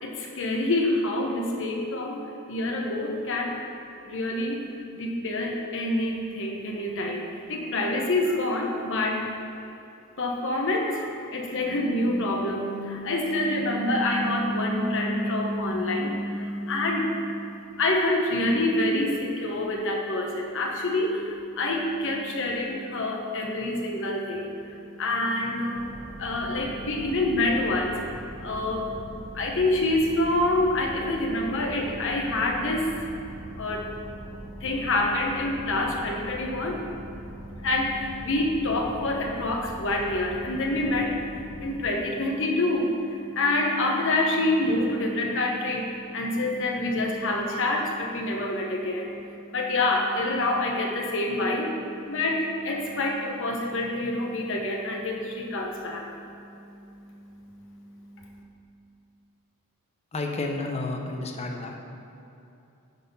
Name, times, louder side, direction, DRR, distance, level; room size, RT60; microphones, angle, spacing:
voice 1, 0.0-2.2 2.5-3.6 4.0-9.3 10.2-58.4, left 1 dB, 60° left, 0 dB, 1.1 m, -27 dB
sound 1, 25.7-41.8, equal, 5° right, 1.6 m, -42 dB
voice 2, 60.1-61.8, left 2 dB, 30° left, 2 dB, 0.7 m, -31 dB
9.2 x 4.2 x 5.5 m, 2.7 s
head